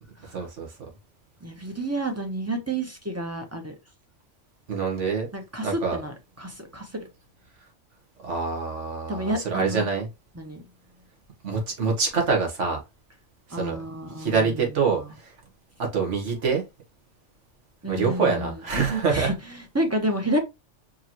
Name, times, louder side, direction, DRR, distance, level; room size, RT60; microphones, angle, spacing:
voice 1, 0.3-0.7 4.7-5.3 5.6-6.0 8.2-10.1 11.4-12.8 13.5-13.8 14.2-15.3 15.8-16.6 17.9-19.3, right 5 dB, 80° right, 1.6 m, -25 dB
voice 2, 1.4-3.7 5.3-7.1 9.1-9.9 10.3-10.6 13.5-15.1 17.8-18.6 19.1-20.4, right 1 dB, 15° right, 0.6 m, -30 dB
4.8 x 3.0 x 2.9 m
omnidirectional pair, 1.2 m